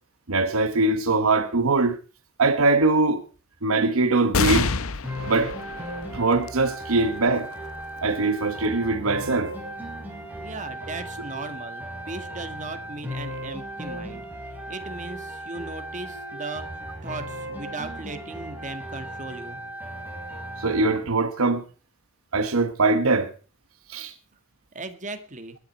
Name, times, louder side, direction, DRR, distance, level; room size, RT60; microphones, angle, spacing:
voice 1, 0.3-2.0 2.4-3.2 3.6-4.7 5.2-5.5 6.1-7.5 8.0-9.5 20.6-21.6 22.3-23.3 23.9-24.1, right 3 dB, 65° right, 1.0 m, -22 dB
sound 1, 4.3-11.2 11.8-11.9 13.1-13.6, left 4 dB, 65° left, 0.9 m, -31 dB
sound 2, 5.0-21.1, right 1 dB, 10° right, 4.7 m, -36 dB
voice 2, 10.4-14.2 14.7-16.7 17.0-19.6 24.7-25.6, right 3 dB, 35° right, 1.8 m, -37 dB
20.5 x 10.5 x 4.4 m
head